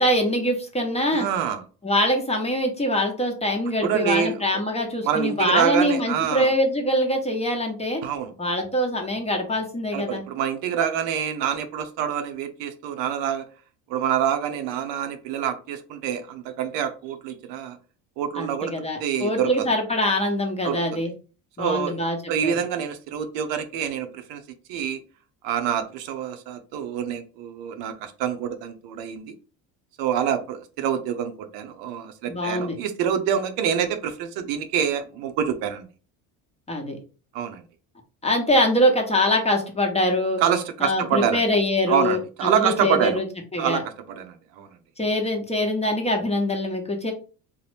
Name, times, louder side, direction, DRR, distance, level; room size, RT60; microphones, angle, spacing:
voice 1, 0.0-1.3 1.8-8.0 8.4-10.2 18.4-21.1 21.6-22.2 22.4-22.5 32.3-32.8 36.7-37.0 38.2-40.4 40.8-43.3 43.5-43.8 45.0-47.1, left 1 dB, 15° left, 2 dB, 0.8 m, -23 dB
voice 2, 1.1-1.6 3.8-4.4 5.0-6.5 8.0-8.3 9.9-13.4 13.9-17.8 18.2-18.7 19.0-19.7 20.6-21.1 21.6-22.0 22.3-24.4 24.7-25.0 25.4-29.3 30.0-35.9 37.3-37.6 40.4-41.4 41.9-43.2 43.6-44.7, right 8 dB, 70° right, 7 dB, 0.6 m, -26 dB
2.8 x 2.1 x 3.2 m, 0.36 s
supercardioid pair, 80°, 44 cm